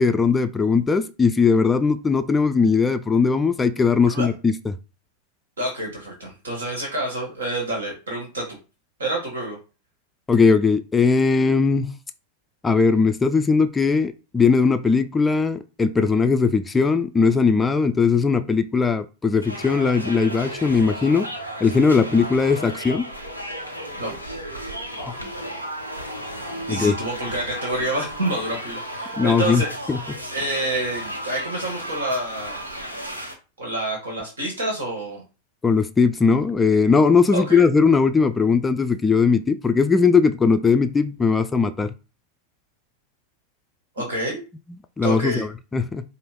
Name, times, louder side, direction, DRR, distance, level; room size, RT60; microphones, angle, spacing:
voice 1, 0.0-4.6 10.3-12.0 12.6-21.3 21.6-23.1 25.0-25.2 26.7-27.0 29.2-29.6 29.9-30.0 35.6-41.9 45.0-46.0, left 5 dB, 15° left, 0.3 m, -19 dB
voice 2, 5.6-8.6 9.0-9.6 24.0-24.1 26.5-29.7 30.3-32.6 33.6-35.2 37.3-37.6 44.0-44.4 45.0-45.4, right 1 dB, 70° right, 1.4 m, -28 dB
sound 1, 19.4-33.3, equal, 85° right, 0.8 m, -34 dB
5.0 x 2.1 x 3.6 m
figure-of-eight pair, 90°, 0 cm